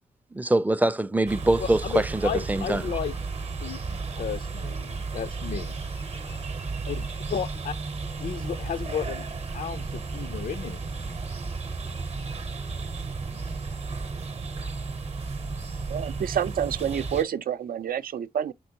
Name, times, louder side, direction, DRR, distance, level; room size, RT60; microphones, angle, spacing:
voice 1, 0.3-2.8, right 1 dB, 10° right, 0.4 m, -24 dB
sound 1, 1.3-17.2, right 4 dB, 45° right, 0.8 m, -33 dB
voice 2, 1.6-3.1 3.6-5.8 6.9-7.7 8.2-10.8, left 8 dB, 65° left, 0.4 m, -33 dB
voice 3, 15.9-18.5, right 9 dB, 70° right, 0.4 m, -28 dB
4.4 x 4.4 x 2.7 m
cardioid pair, 70°, 15 cm